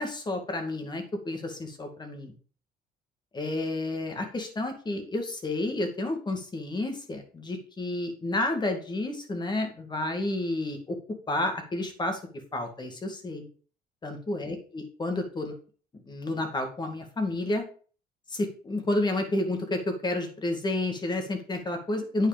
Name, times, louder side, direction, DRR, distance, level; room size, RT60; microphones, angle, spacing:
voice 1, 0.0-2.3 3.3-11.0 11.3-12.2 12.5-13.5 14.0-15.5 16.1-17.6 18.3-22.3, left 2 dB, 25° left, 5 dB, 2.2 m, -30 dB
8.9 x 5.0 x 5.1 m, 0.42 s
cardioid pair, 110°, 17 cm